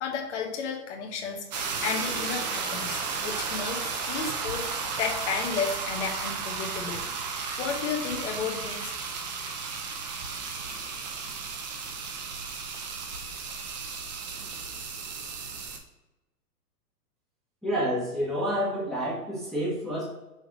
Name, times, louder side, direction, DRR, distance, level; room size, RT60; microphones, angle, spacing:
voice 1, 0.0-7.0 7.6-9.0, left 6 dB, 45° left, 2 dB, 1.2 m, -33 dB
sound 1, 1.5-15.8, right 5 dB, 30° right, 0.6 m, -34 dB
voice 2, 17.6-20.1, equal, ahead, -9 dB, 1.2 m, -29 dB
6.3 x 3.3 x 5.8 m, 1.0 s
hypercardioid pair, 160°, 48 cm